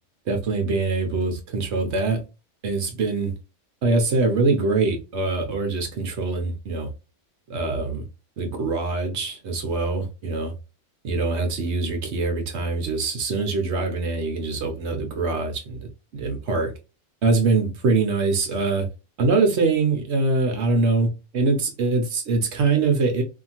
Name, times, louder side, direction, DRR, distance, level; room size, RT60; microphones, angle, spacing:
voice 1, 0.3-2.2 2.6-3.3 3.8-6.9 7.5-8.0 8.4-10.5 11.0-16.7 17.2-18.9 19.2-23.2, right 3 dB, 65° right, 1.0 m, -23 dB
2.8 x 2.5 x 2.8 m
omnidirectional pair, 1.3 m